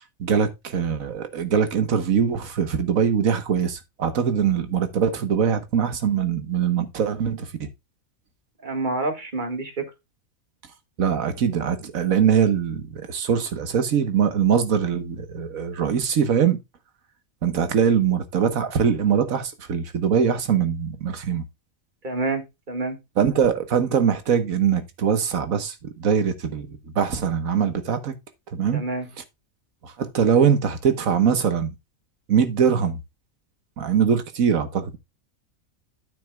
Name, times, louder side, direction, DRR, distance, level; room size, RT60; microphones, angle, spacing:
voice 1, 0.2-7.7 11.0-16.6 17.4-21.4 23.2-28.1 28.5-28.8 29.8-31.7 32.3-33.0 33.8-35.0, right 7 dB, 85° right, 1.6 m, -22 dB
voice 2, 8.6-9.8 22.0-23.0 28.7-29.1, right 2 dB, 35° right, 1.8 m, -28 dB
9.8 x 8.4 x 2.3 m
omnidirectional pair, 1.4 m